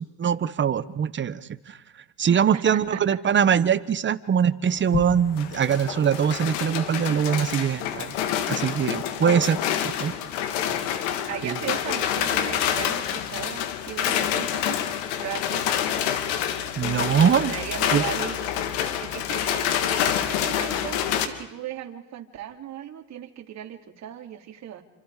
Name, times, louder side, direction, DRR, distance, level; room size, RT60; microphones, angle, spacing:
voice 1, 0.2-1.4 2.2-8.1 8.5-9.6 9.8-10.1 11.4-11.6 16.8-17.5 17.9-18.0, right 8 dB, 30° right, 14 dB, 1.3 m, -22 dB
voice 2, 2.5-3.2 11.3-14.9 15.2-15.9 17.4-18.4 19.0-24.8, right 10 dB, 45° right, 3 dB, 3.3 m, -37 dB
sound 1, 4.7-21.3, left 9 dB, 80° left, 2.7 m, -27 dB
29.0 x 25.5 x 5.0 m, 1.1 s
supercardioid pair, 110°, 37 cm